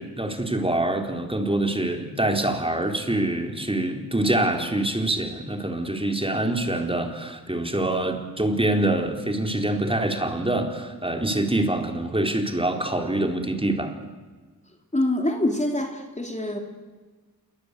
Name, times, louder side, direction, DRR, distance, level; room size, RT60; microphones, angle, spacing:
voice 1, 0.0-13.9, right 1 dB, 15° right, 3 dB, 4.0 m, -25 dB
voice 2, 14.9-16.6, left 1 dB, 20° left, 3 dB, 3.5 m, -25 dB
28.0 x 23.5 x 8.3 m, 1.3 s
wide cardioid pair, 85°, 36 cm